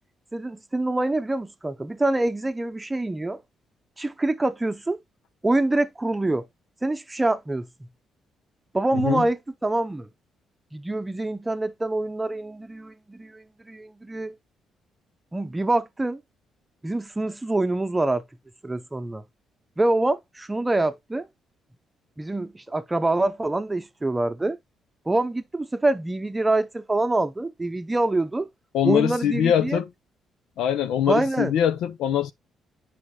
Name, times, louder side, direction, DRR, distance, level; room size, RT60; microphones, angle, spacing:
voice 1, 0.3-3.4 4.0-5.0 5.4-6.4 6.8-7.7 8.7-10.1 10.7-14.3 15.3-16.2 16.8-18.2 18.6-19.2 19.8-21.3 22.2-24.6 25.1-28.5 28.8-29.8 31.1-31.5, right 2 dB, 15° right, 0.8 m, -25 dB
voice 2, 8.9-9.3 28.7-29.9 30.6-32.3, left 10 dB, 85° left, 0.7 m, -23 dB
9.6 x 5.0 x 2.3 m
cardioid pair, 90°, 0 cm